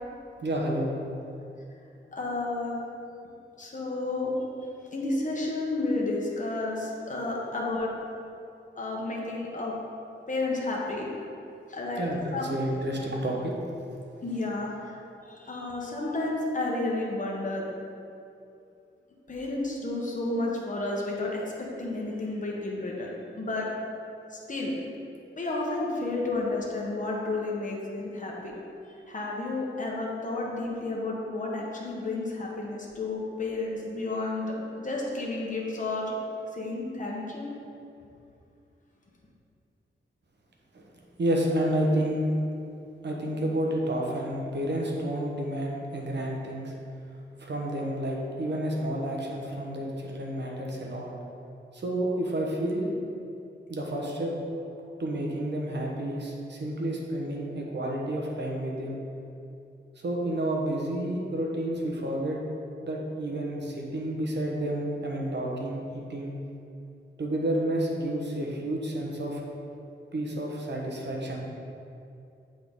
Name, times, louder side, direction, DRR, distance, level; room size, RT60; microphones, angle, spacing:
voice 1, 0.4-0.9 12.0-13.5 40.7-40.8 41.2-42.3 43.0-46.7 47.4-51.1 51.7-52.9 53.7-54.3 55.0-59.0 60.0-62.4 62.8-66.4 67.2-69.4 70.1-71.4, right 1 dB, 60° right, -2 dB, 1.1 m, -30 dB
voice 2, 2.1-2.8 3.6-4.3 4.9-7.9 8.8-9.7 10.3-11.1 11.7-12.5 14.2-17.7 19.3-23.1 23.3-23.7 24.3-24.7 25.4-28.5 29.1-36.1 36.5-37.5, left 2 dB, 40° left, -3 dB, 1.2 m, -31 dB
8.4 x 3.9 x 3.7 m, 2.6 s
cardioid pair, 70°, 20 cm